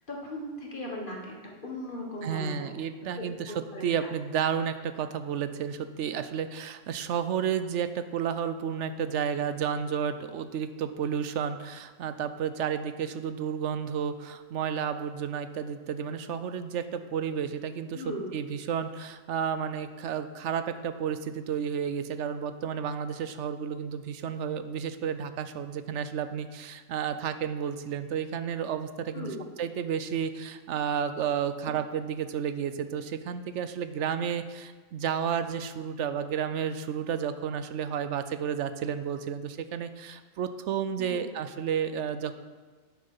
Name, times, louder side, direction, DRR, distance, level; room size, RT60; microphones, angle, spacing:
voice 1, 0.1-1.4 1.6-2.8 3.1-4.1 17.9-18.3 29.1-29.5 41.0-41.3, left 1 dB, 45° left, -1 dB, 1.6 m, -38 dB
voice 2, 2.2-3.5 3.8-29.3 29.6-42.4, right 8 dB, 75° right, 11 dB, 0.9 m, -32 dB
8.6 x 7.7 x 5.5 m, 1.4 s
omnidirectional pair, 1.3 m